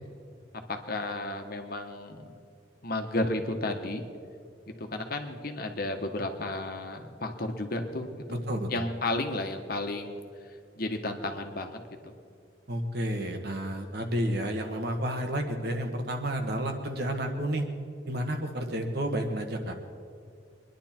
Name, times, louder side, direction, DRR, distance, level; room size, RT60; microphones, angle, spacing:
voice 1, 0.7-2.3 2.8-4.0 4.8-8.4 8.7-10.2 10.8-11.8 12.0-12.1, left 2 dB, 55° left, 5 dB, 1.3 m, -33 dB
voice 2, 8.3-8.8 12.7-17.6 18.1-19.7, right 1 dB, 60° right, 4 dB, 1.5 m, -31 dB
23.0 x 10.5 x 4.4 m, 2.3 s
head